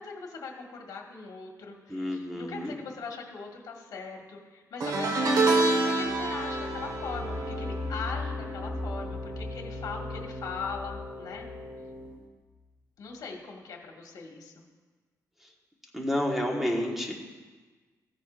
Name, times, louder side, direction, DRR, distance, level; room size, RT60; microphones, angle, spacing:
voice 1, 0.0-11.5 13.0-14.5, left 4 dB, 70° left, 0 dB, 1.7 m, -40 dB
voice 2, 1.9-2.8 15.4-15.5 15.9-17.1, left 1 dB, 5° right, 0 dB, 1.3 m, -30 dB
sound 1, 4.8-10.2 10.5-10.8 12.1-12.2, right 2 dB, 65° right, 1.3 m, -29 dB
sound 2, 5.9-12.6, left 2 dB, 85° right, 3.8 m, -39 dB
Wind instrument woodwind instrument, 6.4-12.1, left 3 dB, 40° left, 2.3 m, -43 dB
15.0 x 10.0 x 2.5 m, 1.4 s
wide cardioid pair, 155°, 7 cm